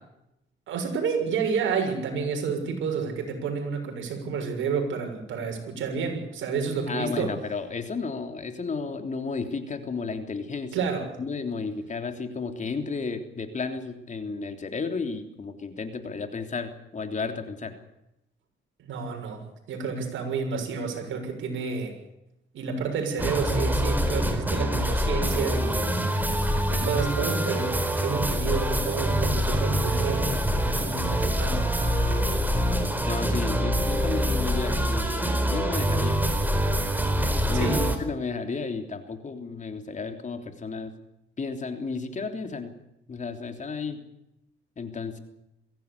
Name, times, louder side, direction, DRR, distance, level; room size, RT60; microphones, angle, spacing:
voice 1, 0.7-7.3 10.7-11.1 18.8-19.4 19.7-21.9 22.5-25.9 26.7-31.6 37.5-37.9, right 5 dB, 75° right, 3 dB, 6.8 m, -30 dB
voice 2, 6.9-10.9 11.2-17.8 33.1-36.6 37.2-40.9 41.4-42.7 43.1-44.0 44.8-45.2, left 4 dB, 40° left, 6 dB, 3.3 m, -33 dB
sound 1, 23.2-38.0, equal, 10° right, 4.3 m, -25 dB
22.5 x 16.5 x 8.4 m, 0.86 s
cardioid pair, 90°, 20 cm